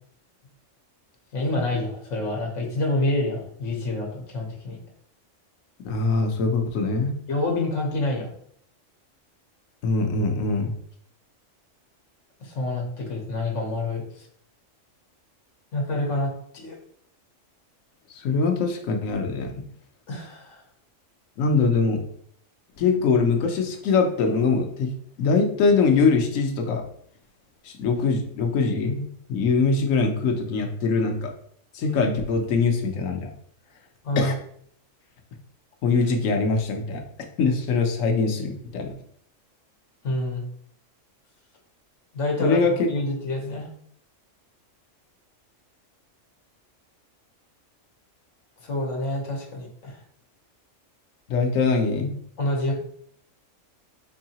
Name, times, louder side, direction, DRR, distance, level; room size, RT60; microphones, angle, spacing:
voice 1, 1.3-4.8 7.3-8.3 12.4-14.0 15.7-16.8 20.1-20.6 34.0-34.3 40.0-40.4 42.1-43.7 48.6-50.0 52.4-52.7, left 2 dB, 70° left, -1 dB, 1.3 m, -27 dB
voice 2, 5.8-7.1 9.8-10.8 18.1-19.6 21.4-22.0 22.8-24.9 25.2-26.8 27.6-31.3 31.7-33.3 34.2-34.3 35.8-37.0 37.4-38.9 42.4-42.9 51.3-52.1, left 4 dB, 85° left, 4 dB, 1.1 m, -23 dB
4.5 x 2.7 x 2.8 m, 0.64 s
omnidirectional pair, 1.3 m